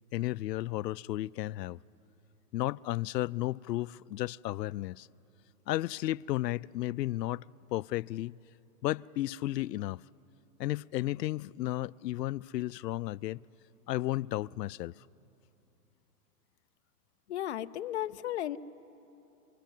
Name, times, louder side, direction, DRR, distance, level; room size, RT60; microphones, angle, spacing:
voice 1, 0.1-1.8 2.5-5.1 5.7-7.4 7.7-8.3 8.8-10.0 10.6-13.4 13.9-15.0, left 16 dB, 90° left, 0.5 m, -33 dB
voice 2, 17.3-18.6, left 12 dB, 45° left, 0.6 m, -34 dB
30.0 x 23.5 x 7.6 m
hypercardioid pair, 165°, 48 cm